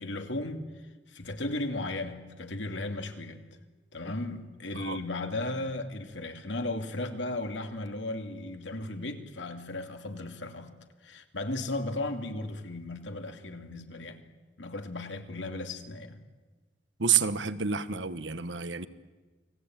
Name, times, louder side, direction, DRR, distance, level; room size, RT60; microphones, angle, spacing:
voice 1, 0.0-3.4 3.9-10.7 11.0-14.2 14.6-16.2, left 2 dB, 85° left, 2.6 m, -36 dB
voice 2, 17.0-18.9, right 7 dB, 85° right, 1.3 m, -29 dB
29.5 x 20.5 x 9.1 m
head